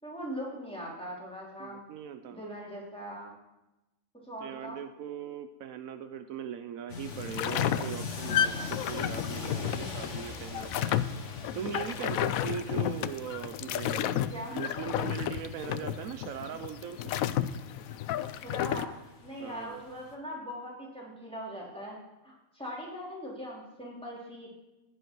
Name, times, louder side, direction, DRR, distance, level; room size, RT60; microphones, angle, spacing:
voice 1, 0.0-1.9 2.3-3.3 4.3-4.8 14.3-14.5 18.3-18.9 19.2-22.0 22.2-24.5, equal, 5° left, -5 dB, 3.4 m, -40 dB
voice 2, 1.6-2.4 4.4-11.1 11.5-14.2 14.5-17.1 19.4-19.8, right 8 dB, 75° right, 9 dB, 1.0 m, -40 dB
sound 1, 6.9-20.1, left 4 dB, 60° left, 1.6 m, -43 dB
sound 2, 7.1-18.9, left 10 dB, 80° left, 1.0 m, -32 dB
15.5 x 10.0 x 4.6 m, 0.99 s
omnidirectional pair, 1.5 m